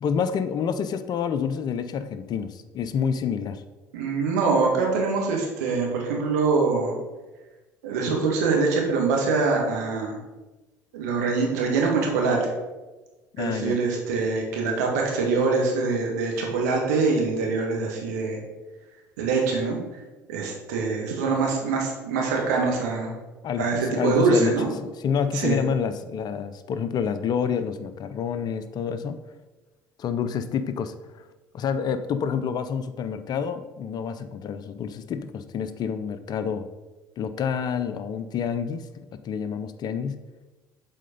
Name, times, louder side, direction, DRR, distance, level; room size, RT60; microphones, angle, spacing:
voice 1, 0.0-3.6 13.3-13.8 23.4-29.2 30.0-30.9 31.5-36.7 37.2-40.2, left 7 dB, 50° left, 11 dB, 0.6 m, -28 dB
voice 2, 3.9-7.0 7.8-10.2 10.9-12.4 13.4-18.4 19.2-19.8 20.3-23.1 23.6-24.7 25.3-25.6, right 4 dB, 80° right, -1 dB, 1.7 m, -24 dB
7.5 x 4.3 x 5.2 m, 1.2 s
hypercardioid pair, 65°, 9 cm